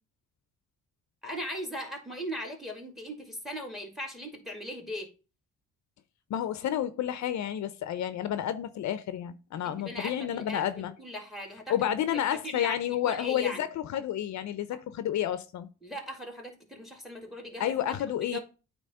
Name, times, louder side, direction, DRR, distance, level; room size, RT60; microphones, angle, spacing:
voice 1, 1.2-5.1 9.6-11.8 12.1-13.6 15.8-17.7 18.2-18.4, equal, ahead, 2.2 m, -39 dB
voice 2, 6.3-10.9 11.7-15.7 17.6-18.4, left 11 dB, 65° left, 0.6 m, -30 dB
8.8 x 3.0 x 5.5 m
cardioid pair, 90°, 30 cm